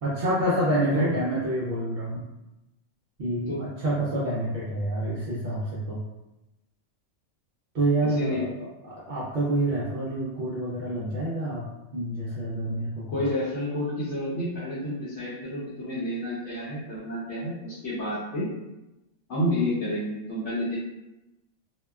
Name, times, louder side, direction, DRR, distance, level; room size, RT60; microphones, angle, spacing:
voice 1, 0.0-2.2 3.2-6.0 7.7-8.5 8.8-13.1, right 1 dB, 55° right, -8 dB, 0.5 m, -27 dB
voice 2, 13.1-18.5 19.3-20.8, left 1 dB, 65° left, -10 dB, 1.0 m, -29 dB
2.8 x 2.2 x 2.2 m, 0.97 s
omnidirectional pair, 1.3 m